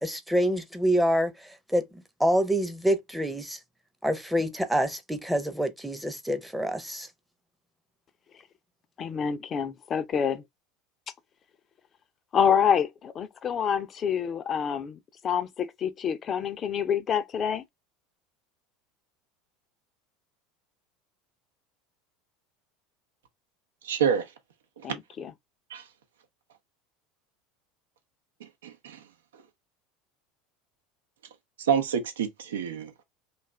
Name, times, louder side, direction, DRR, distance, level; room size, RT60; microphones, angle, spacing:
voice 1, 0.0-1.3 1.7-1.9 2.2-3.6 4.0-7.1, equal, 5° right, 0.7 m, -26 dB
voice 2, 9.0-10.4 12.3-15.0 15.2-17.6 24.8-25.3, left 7 dB, 35° left, 0.5 m, -27 dB
voice 3, 23.8-24.3 25.7-25.8 28.6-29.0 31.6-33.0, right 7 dB, 80° right, 0.7 m, -27 dB
2.6 x 2.4 x 3.2 m
hypercardioid pair, 80°, 0 cm